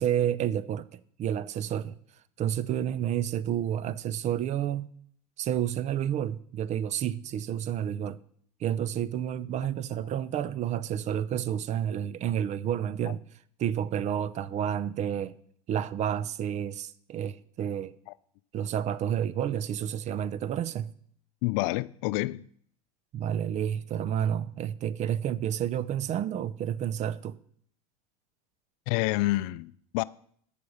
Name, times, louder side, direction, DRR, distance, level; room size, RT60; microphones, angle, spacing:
voice 1, 0.0-2.0 2.4-4.9 5.4-8.2 8.6-13.2 13.6-15.3 15.7-17.9 18.5-20.9 23.1-27.4, right 10 dB, 40° right, 0.5 m, -30 dB
voice 2, 21.4-22.5 28.9-30.0, left 20 dB, 60° left, 0.4 m, -28 dB
8.4 x 6.9 x 6.4 m
hypercardioid pair, 100°, 19 cm